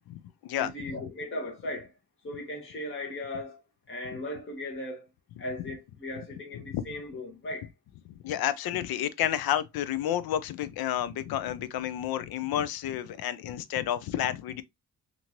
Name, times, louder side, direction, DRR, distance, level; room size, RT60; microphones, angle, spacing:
voice 1, 0.1-1.0 6.5-6.8 8.1-14.6, left 11 dB, 75° left, 0.5 m, -31 dB
voice 2, 0.6-1.9 2.2-3.6 3.9-5.1 5.4-7.7, left 1 dB, 35° left, 1.0 m, -37 dB
2.8 x 2.6 x 2.8 m
cardioid pair, 85°, 38 cm